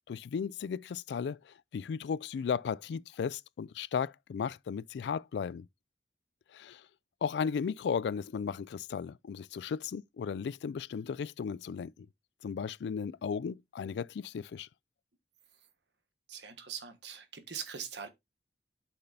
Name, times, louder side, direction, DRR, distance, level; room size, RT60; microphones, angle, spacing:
voice 1, 0.1-5.7 6.5-6.9 7.2-12.1 12.4-14.7, left 6 dB, 80° left, 0.3 m, -35 dB
voice 2, 16.3-18.1, right 7 dB, 85° right, 1.5 m, -42 dB
8.5 x 5.9 x 2.7 m
head